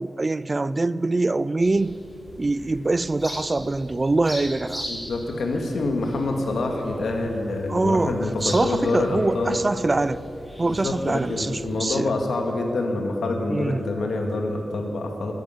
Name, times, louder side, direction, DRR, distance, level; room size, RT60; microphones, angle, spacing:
voice 1, 0.0-2.0 2.4-4.8 7.7-10.2 10.6-12.1 13.5-13.8, right 2 dB, 30° right, 17 dB, 0.4 m, -24 dB
sound 1, 1.6-11.8, equal, ahead, 3.7 m, -40 dB
voice 2, 4.9-9.6 10.7-15.3, left 2 dB, 90° left, 2 dB, 2.1 m, -26 dB
13.5 x 9.6 x 9.8 m, 3.0 s
wide cardioid pair, 105°, 0 cm